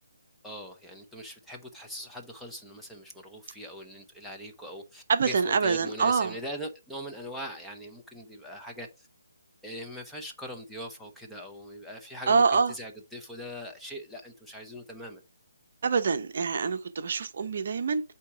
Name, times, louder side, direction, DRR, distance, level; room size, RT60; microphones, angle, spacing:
voice 1, 0.4-9.1 9.6-15.2, equal, ahead, 0.8 m, -41 dB
voice 2, 5.1-6.3 12.3-12.7 15.8-18.0, right 5 dB, 50° right, 0.7 m, -25 dB
8.3 x 2.9 x 4.9 m
figure-of-eight pair, 150°, 0 cm